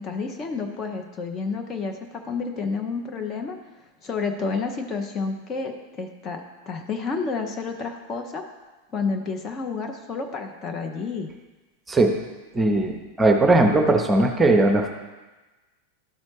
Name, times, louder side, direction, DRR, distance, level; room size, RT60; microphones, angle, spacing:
voice 1, 0.0-2.0 2.2-3.6 4.0-5.7 6.0-8.4 8.9-11.3, left 4 dB, 30° left, 4 dB, 0.7 m, -30 dB
voice 2, 12.5-14.9, right 2 dB, 15° right, 3 dB, 0.8 m, -19 dB
12.0 x 4.1 x 3.2 m, 1.2 s
figure-of-eight pair, 90°, 0 cm